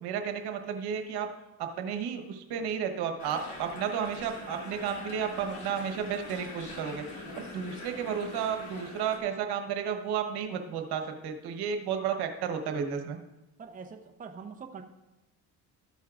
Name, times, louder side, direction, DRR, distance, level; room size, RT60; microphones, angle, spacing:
voice 1, 0.0-1.3 1.8-7.0 7.5-13.2, right 7 dB, 75° right, 5 dB, 1.2 m, -32 dB
sound 1, 3.2-9.2, left 2 dB, 65° left, 2.8 m, -43 dB
voice 2, 13.6-14.8, right 5 dB, 20° right, 4 dB, 0.7 m, -44 dB
13.0 x 8.2 x 2.5 m, 1.0 s
cardioid pair, 100°, 39 cm